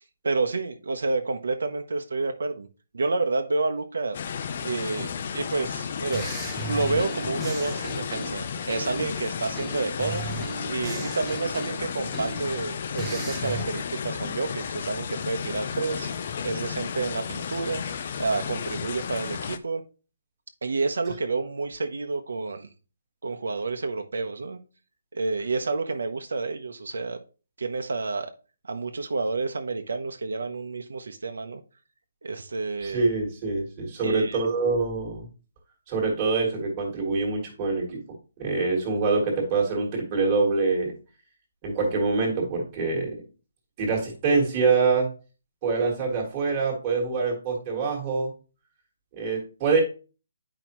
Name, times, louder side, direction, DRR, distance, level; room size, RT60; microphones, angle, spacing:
voice 1, 0.2-2.7 2.9-4.2 4.6-6.2 6.7-10.2 10.7-16.1 16.4-19.8 20.6-22.7 23.2-24.6 25.1-27.2 27.6-28.3 28.6-31.6 32.2-33.0 34.0-34.4, right 3 dB, 80° right, 6 dB, 0.8 m, -29 dB
sound 1, 4.1-19.6, left 7 dB, 30° left, 0.4 m, -33 dB
sound 2, 6.1-9.2 9.6-12.6 13.0-13.7, right 2 dB, ahead, 0.8 m, -36 dB
voice 2, 32.8-35.3 35.9-40.9 41.6-43.2 43.8-45.1 45.6-48.3 49.1-49.8, right 4 dB, 15° right, -2 dB, 1.6 m, -25 dB
9.0 x 4.9 x 3.0 m, 0.34 s
hypercardioid pair, 180°, 0 cm